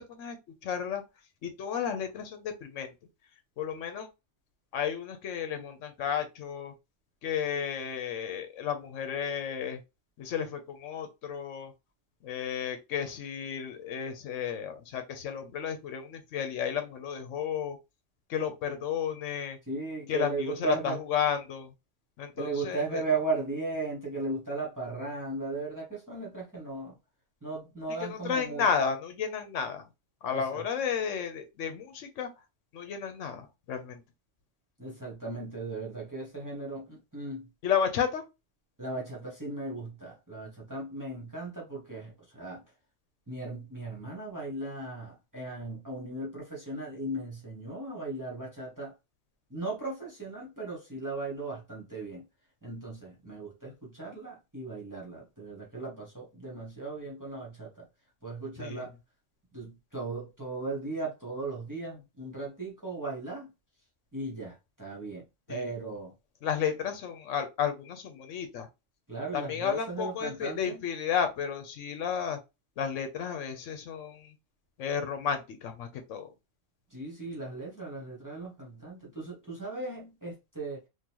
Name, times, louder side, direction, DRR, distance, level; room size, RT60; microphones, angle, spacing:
voice 1, 0.1-1.0 1.4-2.9 3.6-4.1 4.7-6.7 7.2-9.8 10.2-11.7 12.2-17.8 18.3-19.6 20.1-21.7 22.2-23.0 28.0-29.9 30.2-32.3 32.7-34.0 37.6-38.2 58.6-58.9 65.5-65.7 66.4-68.7 69.3-72.4 72.8-74.3 74.8-76.3, left 7 dB, 75° left, 1.1 m, -32 dB
voice 2, 19.7-21.0 22.4-27.0 27.4-28.7 30.3-30.6 34.8-37.5 38.8-42.6 43.3-48.9 49.5-52.2 52.6-57.8 58.2-58.9 59.5-63.5 64.1-66.1 69.1-70.8 76.9-80.8, right 3 dB, 15° right, 1.3 m, -37 dB
3.8 x 2.5 x 3.0 m
omnidirectional pair, 1.3 m